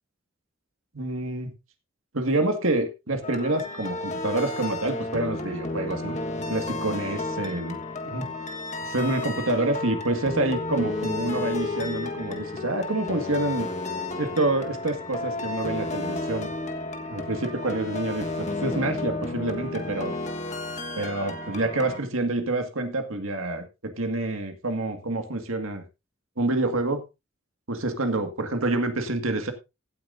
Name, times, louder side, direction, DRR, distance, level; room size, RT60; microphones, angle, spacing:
voice 1, 0.9-1.5 2.1-6.2 6.5-7.8 8.1-8.3 8.8-13.7 14.2-16.5 17.1-20.1 21.0-25.8 26.4-27.0 27.7-29.5, right 2 dB, 90° right, 6 dB, 1.9 m, -27 dB
sound 1, 3.2-22.0, left 2 dB, 35° left, 1.5 m, -32 dB
16.5 x 9.1 x 2.6 m, 0.25 s
head